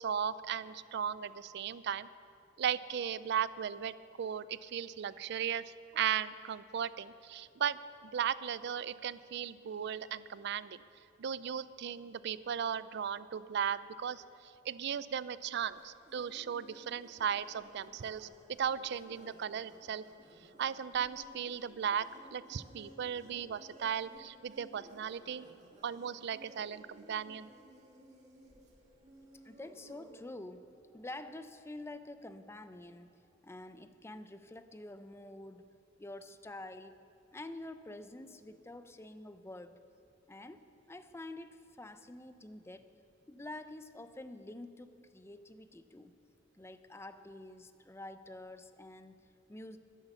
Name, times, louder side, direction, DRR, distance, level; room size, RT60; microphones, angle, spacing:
voice 1, 0.0-2.1 2.6-10.8 11.2-14.2 14.7-18.3 18.6-20.0 20.6-25.5 25.8-27.5, right 8 dB, 60° right, 16 dB, 0.4 m, -36 dB
sound 1, 15.7-30.2, right 1 dB, 35° right, 1.9 m, -58 dB
voice 2, 29.4-35.7 36.0-37.0 37.3-39.8 40.3-42.9 43.3-46.1 46.6-49.8, left 2 dB, 15° left, 11 dB, 0.5 m, -48 dB
11.0 x 11.0 x 7.0 m, 2.6 s
head